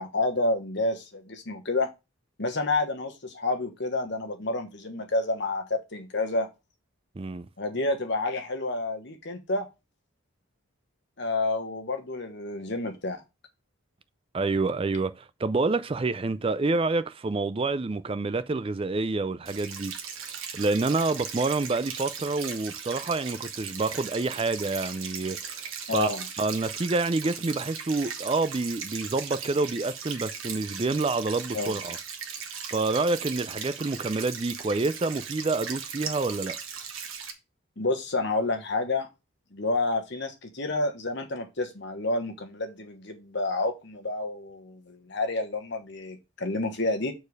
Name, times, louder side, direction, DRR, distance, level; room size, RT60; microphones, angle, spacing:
voice 1, 0.0-1.9 2.4-6.5 7.6-9.7 11.2-13.2 25.9-26.2 31.5-31.8 37.8-39.1 39.5-47.1, left 2 dB, 55° left, 1.3 m, -29 dB
voice 2, 14.3-19.9 20.5-26.1 26.4-32.0 32.7-36.6, right 3 dB, 25° right, 0.4 m, -28 dB
sound 1, 19.5-37.3, right 7 dB, 70° right, 1.3 m, -38 dB
6.9 x 4.5 x 4.8 m
head